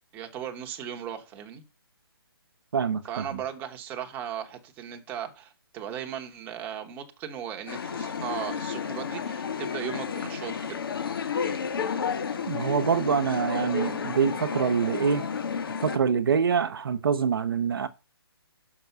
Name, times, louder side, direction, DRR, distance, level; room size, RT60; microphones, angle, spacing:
voice 1, 0.1-1.6 3.1-10.8, right 9 dB, 15° right, 1.0 m, -37 dB
voice 2, 2.7-3.4 12.5-15.3 15.8-17.9, right 6 dB, 60° right, 0.9 m, -25 dB
sound 1, 7.7-16.0, left 6 dB, 60° left, 1.8 m, -32 dB
5.9 x 5.8 x 6.7 m
hypercardioid pair, 165°, 13 cm